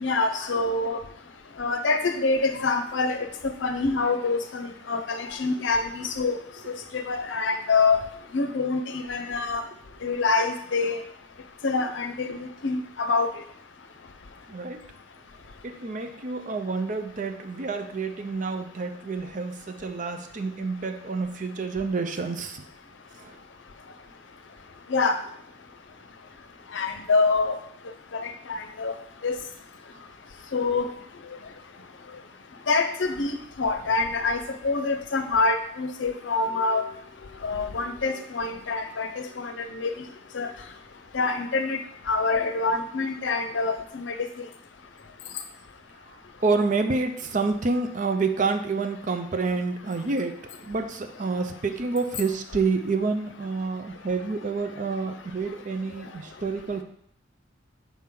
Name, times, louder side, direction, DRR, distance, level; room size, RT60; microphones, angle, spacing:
voice 1, 0.0-1.0 1.6-3.2 3.6-6.4 6.9-8.0 8.3-9.6 10.0-11.0 11.6-12.4 12.6-12.8 13.1-13.3 24.9-25.1 26.7-27.5 28.8-28.9 29.2-29.3 30.5-30.9 32.7-34.4 34.6-36.8 37.4-39.1 39.4-39.5 39.8-39.9 40.3-40.5 41.1-41.8 42.1-44.1, left 3 dB, 70° left, 8 dB, 0.6 m, -25 dB
voice 2, 14.5-14.9 15.6-22.7 23.2-23.4 46.1-46.2 46.4-56.8, right 4 dB, 40° right, 7 dB, 0.5 m, -28 dB
5.9 x 4.2 x 3.8 m, 0.67 s
head